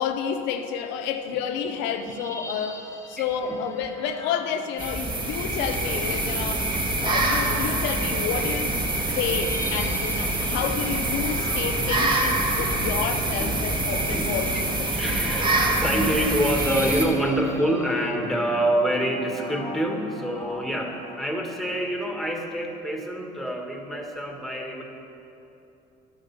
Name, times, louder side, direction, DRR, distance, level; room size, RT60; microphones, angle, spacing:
voice 1, 0.0-6.7 7.0-8.8 9.2-15.0, left 7 dB, 80° left, 7 dB, 0.7 m, -30 dB
sound 1, 1.5-5.4 7.7-21.2, left 2 dB, 15° left, 1.0 m, -41 dB
voice 2, 3.2-3.6 6.9-7.9 8.4-8.5 12.6-12.8 13.4-13.6 14.1-24.8, right 1 dB, ahead, 1 dB, 1.7 m, -27 dB
sound 2, 4.8-17.1, right 2 dB, 25° right, 1.7 m, -25 dB
11.5 x 8.4 x 5.8 m, 2.9 s
supercardioid pair, 90°, 18 cm